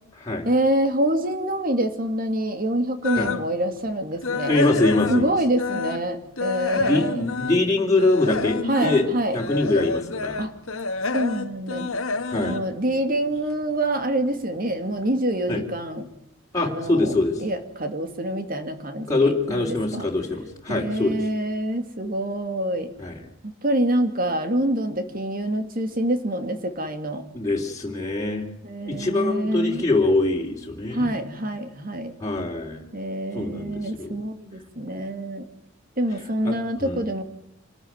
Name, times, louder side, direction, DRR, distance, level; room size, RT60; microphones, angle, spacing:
voice 1, 0.4-4.6 5.1-7.2 8.7-9.4 10.4-10.5 11.1-11.9 12.4-16.1 16.6-20.1 20.7-22.9 23.6-27.2 28.6-29.8 30.9-32.1 32.9-35.5 36.0-37.2, right 1 dB, 45° right, 8 dB, 2.6 m, -26 dB
sound 1, 3.0-3.5 3.9-6.1 6.4-13.6 13.9-14.2 14.7-14.8 15.2-15.3, left 3 dB, 80° left, 1.7 m, -29 dB
voice 2, 4.4-5.3 6.7-9.0 9.3-10.4 12.3-12.6 15.5-15.6 16.5-17.4 19.1-21.2 23.0-23.2 27.3-28.5 28.9-31.1 32.2-32.8 33.3-34.2 36.4-36.5 36.8-37.0, left 2 dB, 15° left, -2 dB, 3.5 m, -23 dB
26.5 x 13.5 x 9.4 m, 0.83 s
head